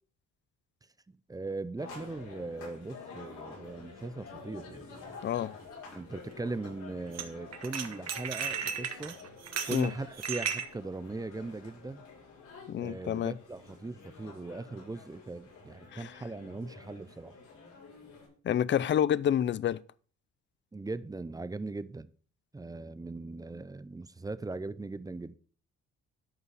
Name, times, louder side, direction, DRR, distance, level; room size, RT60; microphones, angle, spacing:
voice 1, 1.1-5.2 5.9-9.2 9.7-12.0 12.8-17.4 20.7-22.1 22.5-25.4, right 3 dB, 10° right, 0.5 m, -39 dB
sound 1, 1.8-18.3, left 4 dB, 80° left, 6.4 m, -50 dB
sound 2, 5.0-5.1 7.1-7.2 7.5-10.7, right 7 dB, 60° right, 1.5 m, -35 dB
voice 2, 12.7-13.3 15.9-16.1 18.4-19.8, left 10 dB, 40° left, 0.5 m, -28 dB
12.5 x 5.6 x 4.8 m
cardioid pair, 90°, 30 cm